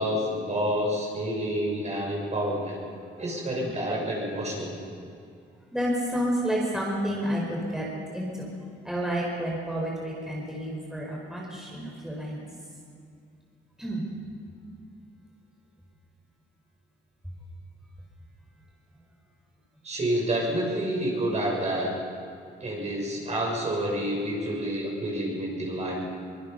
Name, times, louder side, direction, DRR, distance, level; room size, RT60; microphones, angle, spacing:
voice 1, 0.0-2.8 3.2-4.8 19.8-21.9 22.6-26.1, equal, 35° right, -2 dB, 6.9 m, -28 dB
voice 2, 5.7-7.8 8.1-8.5 8.8-12.4 13.8-14.0, equal, ahead, -3 dB, 4.9 m, -30 dB
24.0 x 20.5 x 5.5 m, 2.3 s
cardioid pair, 90°, 20 cm